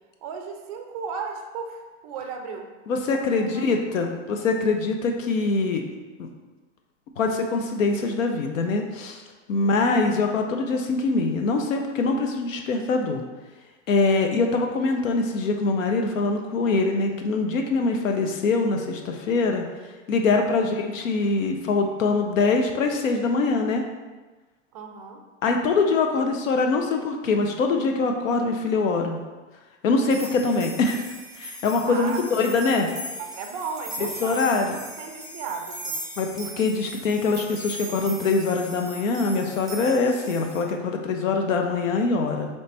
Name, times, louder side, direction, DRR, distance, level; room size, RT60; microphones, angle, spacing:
voice 1, 0.2-2.7 3.1-3.7 9.6-9.8 20.4-20.7 24.7-25.2 31.9-32.3 33.2-36.0, right 5 dB, 30° right, 4 dB, 0.4 m, -35 dB
voice 2, 2.9-5.8 6.2-6.3 7.2-9.2 9.5-13.2 13.9-19.6 20.1-23.8 25.4-29.2 29.8-31.0 31.4-32.9 34.2-34.8 36.2-42.5, left 3 dB, 85° left, 3 dB, 0.8 m, -23 dB
sound 1, 30.1-40.6, right 1 dB, ahead, 0.8 m, -38 dB
3.3 x 3.2 x 4.1 m, 1.3 s
supercardioid pair, 155°, 38 cm